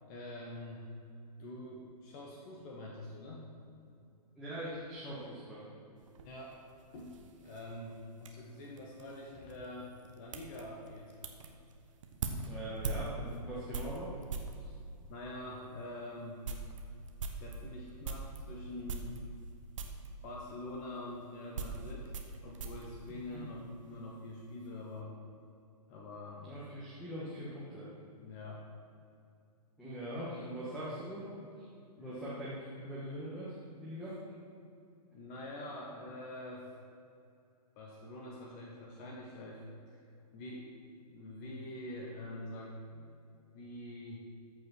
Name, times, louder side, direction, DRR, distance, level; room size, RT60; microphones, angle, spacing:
voice 1, 0.1-0.8 1.4-3.5 3.8-4.0 6.2-6.5 6.9-11.1 14.6-14.7 15.1-16.4 17.3-19.2 20.2-22.1 22.4-25.1 25.9-26.4 28.2-28.7 32.0-32.3 35.1-36.7 37.8-39.6 39.9-40.0 40.3-40.8 41.1-43.1 43.5-44.2, left 1 dB, 30° left, -3 dB, 1.3 m, -45 dB
voice 2, 4.4-5.7 12.4-14.1 23.1-23.4 26.4-27.9 29.8-31.7 32.0-34.2, equal, ahead, -10 dB, 1.7 m, -42 dB
sound 1, 6.0-14.6 15.4-15.5 15.9-16.0 16.2-18.4 18.8-19.5 19.7-20.1 20.9-23.9 24.1-24.7, right 4 dB, 50° right, 1.0 m, -43 dB
14.0 x 5.5 x 4.6 m, 2.5 s
figure-of-eight pair, 120°, 21 cm